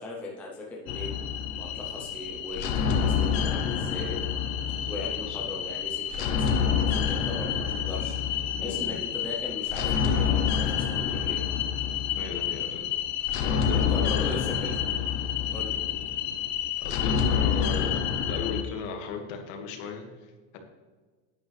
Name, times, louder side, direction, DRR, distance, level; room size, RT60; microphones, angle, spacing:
voice 1, 0.0-4.2 4.9-8.2 8.6-11.4 13.7-14.7 15.5-15.8, left 2 dB, 5° left, -2 dB, 0.5 m, -39 dB
sound 1, 0.9-18.6, left 8 dB, 35° left, 0.8 m, -28 dB
voice 2, 4.8-5.4 8.6-9.0 10.5-10.6 12.2-12.9 13.4-14.5 16.8-20.6, left 5 dB, 50° left, 3 dB, 1.8 m, -37 dB
10.5 x 9.2 x 3.2 m, 1.4 s
supercardioid pair, 165°, 48 cm